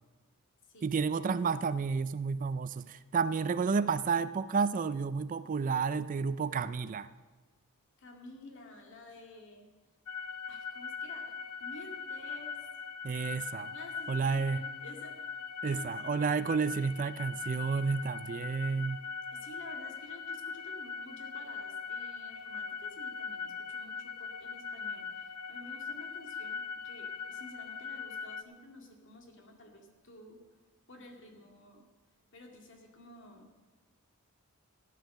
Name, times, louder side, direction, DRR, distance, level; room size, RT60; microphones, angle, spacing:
voice 1, 0.8-7.1 13.0-13.7 14.1-14.6 15.6-19.0, right 5 dB, 35° right, 15 dB, 0.3 m, -31 dB
voice 2, 8.0-9.7 10.5-11.3 11.6-12.6 13.7-15.1 15.6-16.2 19.3-30.4 30.9-31.8 32.3-33.5, left 1 dB, 55° left, 2 dB, 2.2 m, -52 dB
sound 1, 10.1-28.4, left 5 dB, 90° left, 0.8 m, -41 dB
14.0 x 9.2 x 6.7 m, 1.3 s
head